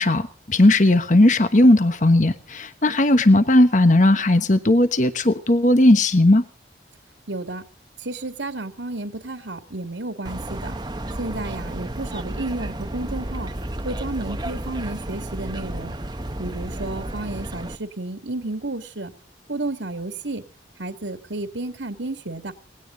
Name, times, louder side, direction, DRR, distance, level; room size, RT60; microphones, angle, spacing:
voice 1, 0.0-6.4, left 1 dB, 40° left, 1.2 m, -16 dB
voice 2, 7.3-7.7 8.0-10.8 11.2-13.5 13.8-16.0 16.4-19.1 19.5-20.4 20.8-22.5, right 2 dB, 80° right, 2.3 m, -32 dB
sound 1, 10.2-17.8, right 1 dB, 20° right, 1.0 m, -32 dB
19.5 x 17.0 x 3.9 m
head